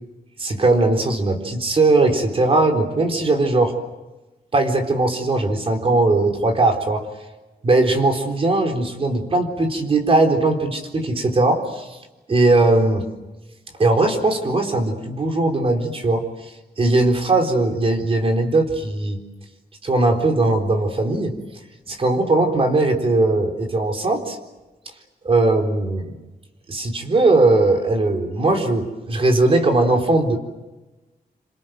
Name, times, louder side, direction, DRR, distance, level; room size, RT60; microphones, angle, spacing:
voice 1, 0.4-3.7 4.5-7.1 7.6-12.0 12.3-13.1 13.8-16.2 16.8-19.2 19.8-21.4 21.9-24.4 25.2-26.2 26.7-30.4, right 2 dB, 35° right, 5 dB, 4.0 m, -19 dB
27.5 x 25.5 x 7.7 m, 1.1 s
wide cardioid pair, 180°, 16 cm